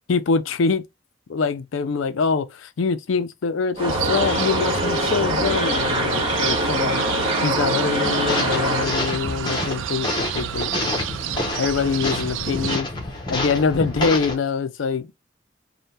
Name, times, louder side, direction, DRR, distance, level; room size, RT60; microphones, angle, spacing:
voice 1, 0.1-0.8 1.3-7.1 7.4-11.0 11.6-12.9 13.3-15.1, left 5 dB, 90° left, 0.5 m, -24 dB
sound 1, 3.8-8.9, equal, 30° right, 1.1 m, -23 dB
sound 2, 3.9-12.8, right 10 dB, 80° right, 0.3 m, -30 dB
sound 3, 8.3-14.4, left 2 dB, 25° left, 0.8 m, -28 dB
3.4 x 2.2 x 4.1 m
head